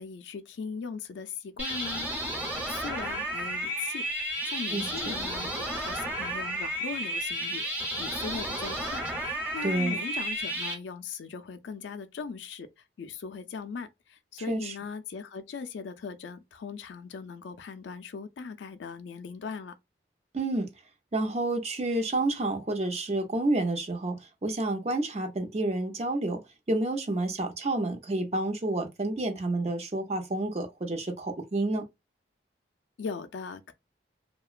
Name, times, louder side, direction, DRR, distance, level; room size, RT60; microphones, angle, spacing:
voice 1, 0.0-2.2 2.5-4.0 4.5-12.7 13.0-19.7 33.0-33.7, left 5 dB, 80° left, 0.4 m, -39 dB
sound 1, 1.6-10.7, right 1 dB, 10° right, 0.8 m, -32 dB
voice 2, 4.7-5.2 9.6-10.0 14.5-14.7 20.3-20.7 21.1-26.4 26.7-31.8, right 2 dB, 35° right, 0.6 m, -29 dB
2.8 x 2.2 x 2.4 m
head